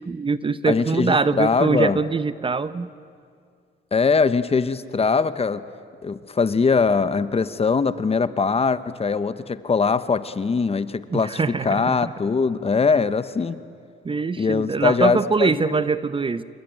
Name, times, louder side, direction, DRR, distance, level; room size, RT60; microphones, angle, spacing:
voice 1, 0.0-2.9 11.1-12.1 14.0-16.4, right 4 dB, 25° right, 14 dB, 0.7 m, -23 dB
voice 2, 0.7-2.0 3.9-5.6 6.0-13.6 14.4-15.8, left 5 dB, 30° left, 13 dB, 1.0 m, -22 dB
26.5 x 21.5 x 9.2 m, 2.3 s
cardioid pair, 90°, 20 cm